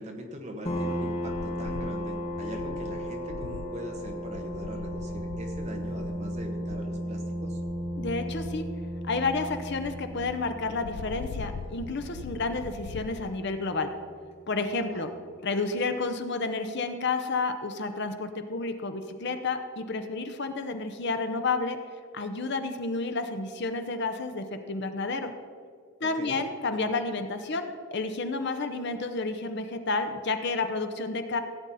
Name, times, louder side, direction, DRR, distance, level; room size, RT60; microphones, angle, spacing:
voice 1, 0.0-7.6 14.9-15.2 26.0-26.4, equal, 30° right, 2 dB, 1.3 m, -41 dB
sound 1, 0.7-13.9, equal, 25° left, 1.2 m, -35 dB
sound 2, 1.3-13.4, left 6 dB, 75° left, 0.3 m, -43 dB
voice 2, 8.0-8.6 9.1-13.9 14.5-15.1 15.4-21.8 22.1-25.3 26.0-31.4, left 3 dB, 50° left, 8 dB, 0.7 m, -30 dB
16.0 x 8.8 x 4.1 m, 2.2 s
head